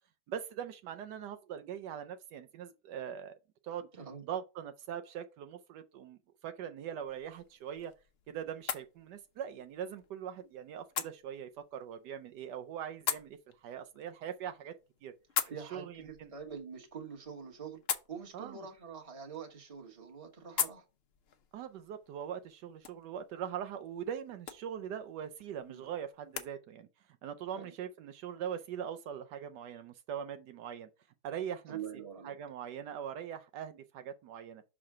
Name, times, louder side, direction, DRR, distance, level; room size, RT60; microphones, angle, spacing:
voice 1, 0.3-3.3 3.6-3.9 4.2-7.9 8.3-13.4 13.6-14.7 15.0-15.1 15.7-16.3 18.3-18.6 21.5-26.9 27.2-30.9 31.2-31.8 32.2-34.6, right 9 dB, 80° right, 1.2 m, -41 dB
sound 1, 7.0-26.5, left 7 dB, 60° left, 0.6 m, -43 dB
voice 2, 15.4-17.8 18.1-20.8 25.7-25.8 27.5-27.7 31.7-32.4, right 7 dB, 20° right, 1.2 m, -45 dB
6.0 x 3.7 x 4.8 m
omnidirectional pair, 1.8 m